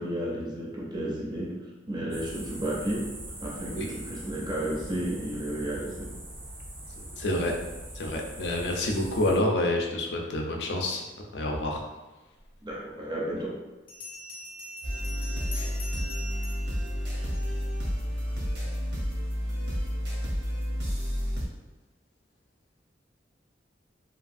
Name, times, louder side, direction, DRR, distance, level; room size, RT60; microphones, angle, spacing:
voice 1, 0.0-1.5 1.9-3.0 3.4-6.1 12.6-13.5, right 1 dB, 25° right, -4 dB, 0.4 m, -32 dB
sound 1, 2.1-9.4, right 1 dB, 90° right, 1.0 m, -42 dB
voice 2, 7.2-7.5 7.9-11.0 11.3-11.8, left 1 dB, 70° left, 1 dB, 0.4 m, -28 dB
Bell, 13.9-17.8, equal, 30° left, 0.7 m, -42 dB
sound 2, 14.8-21.5, equal, 70° right, 0.7 m, -30 dB
2.7 x 2.3 x 2.5 m, 1.1 s
head